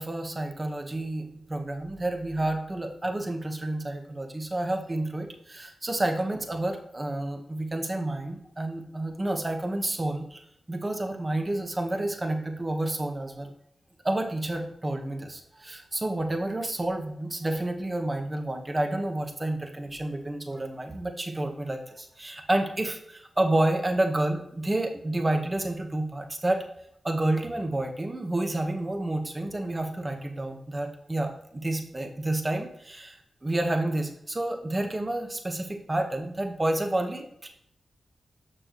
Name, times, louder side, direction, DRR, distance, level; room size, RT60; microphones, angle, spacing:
voice 1, 0.0-10.4 10.7-13.5 14.0-26.6 27.0-37.5, right 1 dB, 30° right, 4 dB, 1.3 m, -29 dB
6.5 x 6.1 x 3.1 m, 0.74 s
cardioid pair, 45°, 0 cm